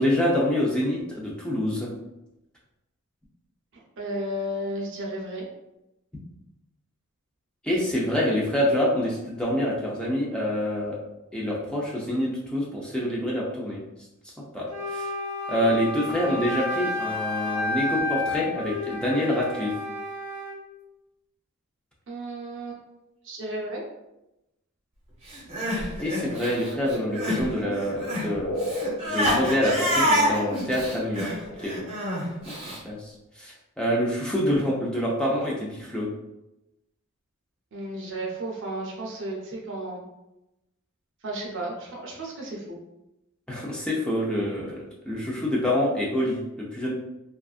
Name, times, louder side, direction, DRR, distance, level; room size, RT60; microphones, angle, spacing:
voice 1, 0.0-1.9 7.6-11.0 11.3-13.8 14.5-15.1 15.5-19.7 26.0-28.6 29.1-31.3 31.6-31.8 32.4-33.1 33.4-36.1 43.5-46.9, left 1 dB, 5° left, -4 dB, 0.4 m, -26 dB
voice 2, 4.0-5.5 22.1-22.8 23.2-23.8 37.7-40.0 41.2-42.8, right 1 dB, 60° right, -1 dB, 0.6 m, -33 dB
Wind instrument woodwind instrument, 14.7-20.6, left 2 dB, 35° left, 0.8 m, -31 dB
Crying sobbing, 25.3-27.5 27.7-32.8, equal, 30° right, 0.8 m, -27 dB
sound 1, 26.1-31.9 32.2-32.3, left 1 dB, 75° left, 0.6 m, -35 dB
2.5 x 2.3 x 2.4 m, 0.92 s
head